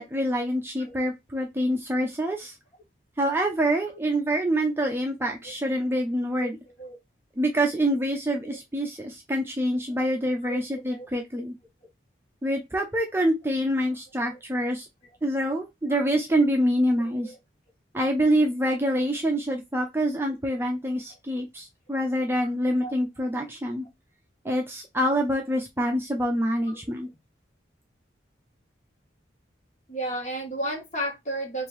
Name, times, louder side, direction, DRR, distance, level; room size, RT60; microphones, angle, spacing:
voice 1, 0.0-2.6 3.2-6.6 7.4-11.5 12.4-14.9 15.2-17.3 17.9-23.8 24.4-27.1, equal, 10° right, 0.6 m, -26 dB
voice 2, 10.4-11.1 14.3-14.4 17.0-17.3 22.8-22.9 26.7-26.8 29.9-31.7, right 1 dB, 40° left, 1.6 m, -33 dB
3.4 x 2.6 x 4.6 m
head